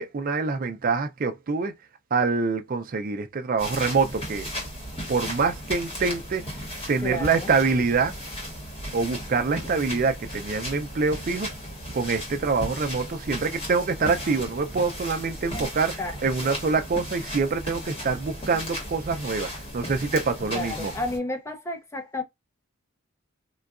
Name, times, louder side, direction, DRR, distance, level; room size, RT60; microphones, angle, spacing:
voice 1, 0.0-1.7 2.1-4.5 5.1-6.4 6.9-8.1 8.9-11.5 11.9-15.9 16.2-20.9, right 4 dB, 45° right, 0.4 m, -25 dB
sound 1, 3.6-21.2, equal, 30° left, 1.1 m, -36 dB
voice 2, 7.0-7.5 15.5-15.7 16.0-16.2 16.4-16.6 20.5-22.2, left 2 dB, 15° left, 0.5 m, -32 dB
3.8 x 2.2 x 2.4 m
head